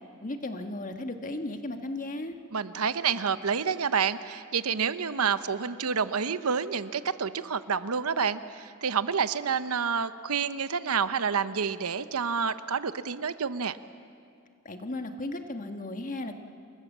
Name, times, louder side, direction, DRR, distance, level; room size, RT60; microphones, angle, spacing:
voice 1, 0.2-2.3 14.6-16.3, left 2 dB, 35° left, 6 dB, 1.5 m, -35 dB
voice 2, 2.5-13.8, right 6 dB, 75° right, 13 dB, 0.8 m, -28 dB
29.0 x 22.0 x 7.4 m, 2.4 s
head